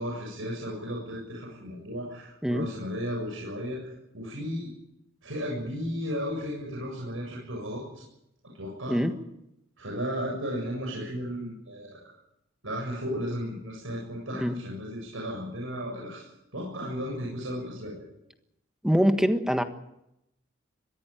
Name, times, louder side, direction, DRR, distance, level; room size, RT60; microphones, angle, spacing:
voice 1, 0.0-4.7 5.2-7.8 8.5-9.0 9.8-12.0 12.6-18.1, equal, 75° right, -2 dB, 7.4 m, -34 dB
voice 2, 18.8-19.6, equal, 5° right, 7 dB, 1.5 m, -23 dB
22.5 x 16.0 x 9.1 m, 0.84 s
head